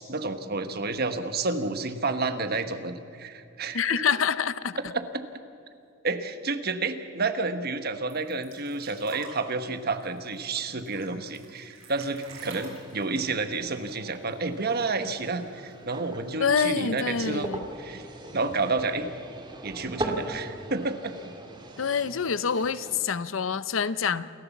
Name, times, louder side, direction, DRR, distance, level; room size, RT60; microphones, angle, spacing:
voice 1, 0.0-4.0 4.9-5.2 6.0-17.5 17.8-18.1 18.3-19.1 19.6-21.2, right 3 dB, 50° right, 9 dB, 1.3 m, -30 dB
voice 2, 3.7-4.8 16.4-17.7 21.8-24.3, left 6 dB, 75° left, 15 dB, 0.7 m, -26 dB
sound 1, 8.1-14.5 14.8-14.9 15.2-15.9 16.7-16.8, right 3 dB, 85° right, 6.6 m, -48 dB
sound 2, 12.2-23.0, right 1 dB, 25° right, 2.3 m, -40 dB
28.5 x 14.0 x 7.3 m, 2.6 s
head